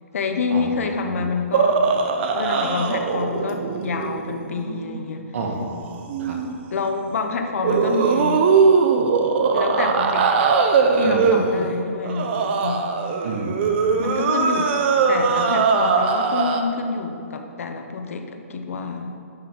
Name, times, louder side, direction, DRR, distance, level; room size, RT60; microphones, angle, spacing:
voice 1, 0.1-1.9 2.3-5.3 6.7-8.4 9.5-10.3 10.9-12.9 14.0-14.7 15.1-19.2, left 4 dB, 65° left, 6 dB, 1.0 m, -27 dB
sound 1, 1.5-5.0 6.1-6.6 7.6-16.6, right 5 dB, 45° right, 0.9 m, -20 dB
voice 2, 5.3-6.4 11.0-11.2 13.2-14.1, right 3 dB, 65° right, 0 dB, 2.0 m, -30 dB
11.0 x 6.2 x 4.7 m, 2.5 s
hypercardioid pair, 140°, 8 cm